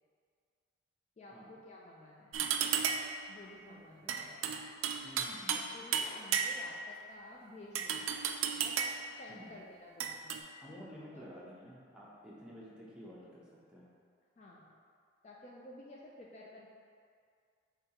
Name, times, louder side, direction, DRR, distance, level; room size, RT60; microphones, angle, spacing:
voice 1, 1.2-2.4 3.3-4.4 5.5-8.1 8.5-8.8 9.2-10.8 11.1-11.2 14.4-14.8 15.2-16.7, left 1 dB, 35° left, -3 dB, 0.3 m, -53 dB
sound 1, 2.3-3.2 4.1-5.7 5.9-6.8 7.7-9.1 10.0-10.4, right 7 dB, 80° right, 0.3 m, -33 dB
voice 2, 5.0-5.7 9.3-9.6 10.6-13.9, equal, 5° right, -7 dB, 0.6 m, -51 dB
6.7 x 2.3 x 2.9 m, 2.2 s
head